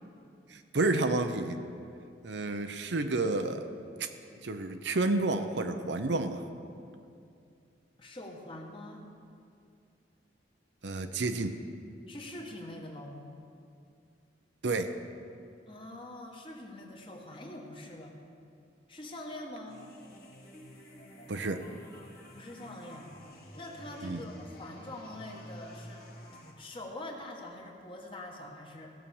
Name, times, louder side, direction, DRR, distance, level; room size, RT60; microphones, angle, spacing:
voice 1, 0.5-1.6 2.2-3.6 4.0-4.1 4.4-6.4 10.8-11.6 14.6-14.9 21.3-21.6 24.0-24.2, right 2 dB, 70° right, 8 dB, 0.7 m, -30 dB
voice 2, 8.0-9.1 12.1-13.2 15.7-18.2 18.9-19.8 22.3-23.1 23.6-26.0 26.6-28.9, left 1 dB, 30° left, 0 dB, 1.4 m, -44 dB
sound 1, 19.7-26.5, equal, 55° left, 1.9 m, -50 dB
16.0 x 6.3 x 7.1 m, 2.4 s
head